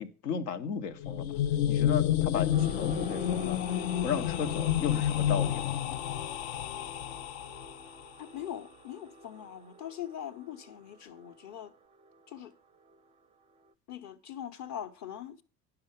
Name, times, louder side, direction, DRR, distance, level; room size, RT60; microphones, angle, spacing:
voice 1, 0.0-1.3 1.7-3.6 4.0-5.7, left 7 dB, 75° left, 1.0 m, -34 dB
sound 1, 0.9-7.9, left 11 dB, 55° left, 0.6 m, -30 dB
sound 2, 2.5-12.5 12.8-13.1 13.6-13.7, right 1 dB, 15° right, 0.4 m, -47 dB
voice 2, 8.2-11.7 12.3-12.5 13.9-15.4, left 10 dB, 35° left, 0.9 m, -42 dB
10.5 x 5.8 x 5.2 m
figure-of-eight pair, 70°, 48 cm